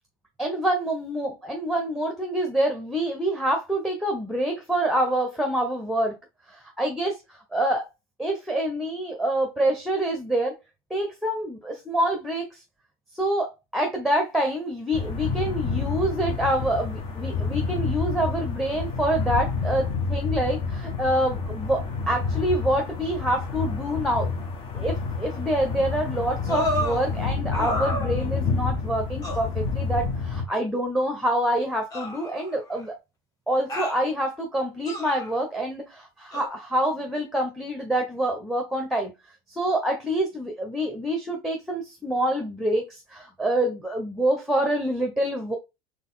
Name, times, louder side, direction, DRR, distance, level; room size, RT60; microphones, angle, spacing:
voice 1, 0.4-6.2 6.5-7.9 8.2-10.6 10.9-12.5 13.1-24.3 24.7-32.9 33.5-39.1 39.5-45.6, right 1 dB, ahead, 1.0 m, -26 dB
sound 1, 14.9-30.4, left 4 dB, 45° left, 1.3 m, -29 dB
sound 2, 26.5-27.0 27.5-28.5 29.2-29.5 30.5-30.6 31.9-32.8 33.7-34.0 34.9-35.3 36.3-36.5, equal, 25° left, 1.6 m, -31 dB
4.0 x 3.4 x 3.9 m
supercardioid pair, 100°, 13 cm